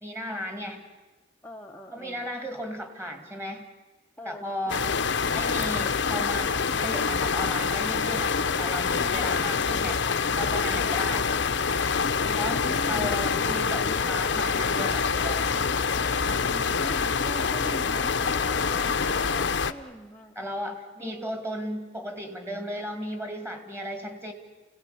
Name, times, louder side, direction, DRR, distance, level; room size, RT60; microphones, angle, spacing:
voice 1, 0.0-0.8 1.9-3.7 4.2-4.9 5.3-8.3 8.6-11.3 12.4-12.6 12.9-15.5 20.4-24.3, equal, 15° right, 5 dB, 2.2 m, -35 dB
voice 2, 1.4-2.3 4.2-4.9 9.0-9.4 10.7-11.3 12.1-13.0 16.2-20.3 21.0-21.5, equal, 10° left, 0 dB, 0.8 m, -42 dB
sound 1, 4.7-19.7, left 5 dB, 70° left, 0.7 m, -26 dB
29.5 x 17.5 x 7.0 m, 1.3 s
head